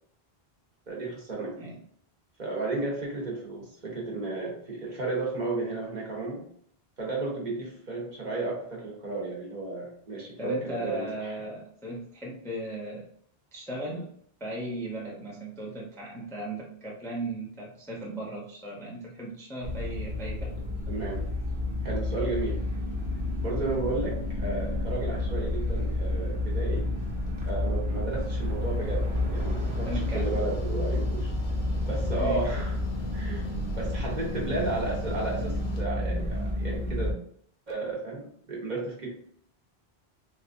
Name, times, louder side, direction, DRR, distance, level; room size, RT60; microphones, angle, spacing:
voice 1, 0.9-1.6 2.4-6.5 7.0-11.3 20.9-21.3 21.8-22.6 23.4-26.9 27.4-29.9 30.1-31.3 31.8-32.8 33.1-37.1 37.7-39.1, right 3 dB, 50° right, -3 dB, 1.0 m, -33 dB
voice 2, 10.4-13.1 13.5-14.1 14.4-20.6 29.9-30.3 32.2-32.5, right 1 dB, 5° left, -3 dB, 0.5 m, -37 dB
sound 1, 19.6-37.1, left 1 dB, 90° right, 1.1 m, -30 dB
sound 2, 28.4-35.8, left 2 dB, 55° left, 0.7 m, -39 dB
4.0 x 2.2 x 2.5 m, 0.63 s
omnidirectional pair, 1.0 m